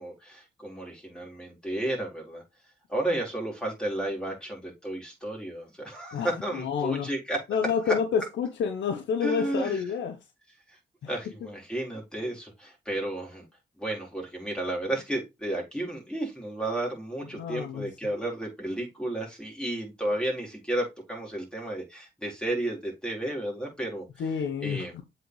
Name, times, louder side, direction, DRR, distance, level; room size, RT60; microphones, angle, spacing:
voice 1, 0.0-2.4 2.9-7.4 7.9-8.0 9.2-9.8 10.7-10.8 11.1-13.5 13.8-24.3 24.6-24.9, right 1 dB, 5° left, 4.2 m, -32 dB
voice 2, 6.5-7.1 7.5-10.2 17.4-17.9 24.2-25.0, left 6 dB, 70° left, 0.9 m, -28 dB
7.7 x 4.5 x 3.1 m
hypercardioid pair, 45°, 19 cm